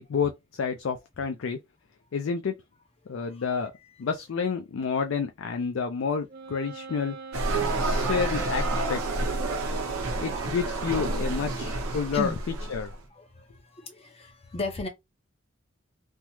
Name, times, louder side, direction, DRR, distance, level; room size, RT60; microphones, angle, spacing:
voice 1, 0.0-1.6 2.1-2.5 3.1-3.7 4.0-7.2 7.8-8.6 8.9-9.2 10.2-12.3 12.7-12.9, left 6 dB, 70° left, 0.4 m, -29 dB
Wind instrument woodwind instrument, 6.3-10.8, right 2 dB, 45° right, 0.5 m, -42 dB
sound 1, 7.3-12.9, right 2 dB, 85° right, 0.7 m, -29 dB
voice 2, 8.0-8.3 10.0-10.4 10.9-11.0 11.5-11.7 12.1-12.4 13.1-14.9, left 2 dB, 30° left, 0.6 m, -37 dB
3.4 x 2.0 x 3.0 m
head